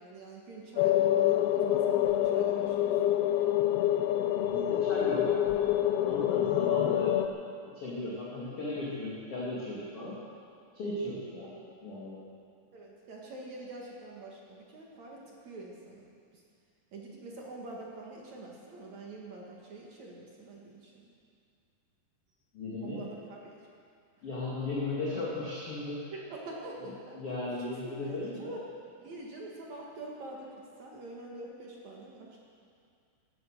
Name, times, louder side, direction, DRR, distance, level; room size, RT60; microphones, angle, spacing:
voice 1, 0.0-3.0 11.5-11.6 12.7-16.0 16.3-16.4 16.9-21.1 22.8-23.6 26.1-27.2 27.5-28.6 29.0-32.4, right 2 dB, 55° right, -2 dB, 2.2 m, -45 dB
sound 1, 0.8-7.3, left 12 dB, 85° left, 2.2 m, -26 dB
voice 2, 4.3-5.3 6.1-7.2 7.7-10.2 10.7-11.5 11.8-12.2 22.5-23.0 24.2-26.0 27.1-28.6, left 2 dB, 40° left, -7 dB, 2.6 m, -36 dB
17.0 x 12.5 x 6.6 m, 2.3 s
omnidirectional pair, 5.4 m